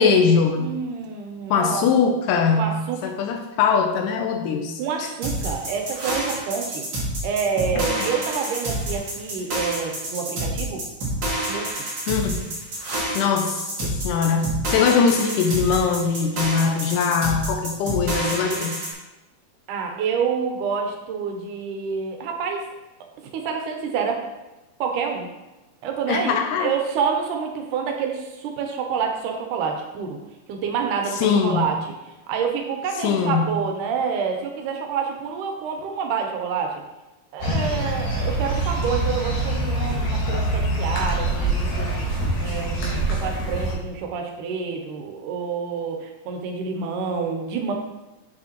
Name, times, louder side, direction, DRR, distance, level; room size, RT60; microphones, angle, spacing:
voice 1, 0.0-0.7 1.5-5.1 7.8-8.1 12.1-12.5 13.2-18.8 26.1-26.7 31.1-31.7 33.0-33.6, left 5 dB, 90° left, 3 dB, 2.2 m, -22 dB
voice 2, 0.6-1.9 2.3-3.0 4.8-6.8 7.2-10.8 11.5-11.7 19.7-22.6 23.3-24.3 24.8-25.3 25.8-30.2 30.5-31.8 32.3-36.7 37.3-47.7, right 6 dB, 85° right, 2 dB, 2.3 m, -28 dB
sound 1, 5.2-18.9, right 1 dB, 40° right, 2.1 m, -28 dB
sound 2, 37.4-43.7, right 1 dB, 65° left, 2.8 m, -24 dB
7.1 x 6.2 x 2.9 m, 1.0 s
omnidirectional pair, 3.6 m